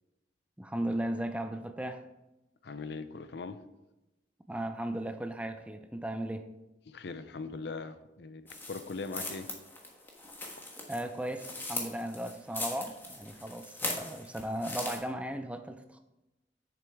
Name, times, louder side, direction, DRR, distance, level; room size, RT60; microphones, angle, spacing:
voice 1, 0.6-2.0 4.5-6.5 10.9-16.0, right 1 dB, 5° right, 7 dB, 0.4 m, -36 dB
voice 2, 2.6-3.6 6.9-9.5, left 4 dB, 60° left, 12 dB, 0.5 m, -40 dB
sound 1, 8.5-15.0, left 2 dB, 10° left, 1.2 m, -40 dB
9.3 x 6.9 x 3.5 m, 0.98 s
head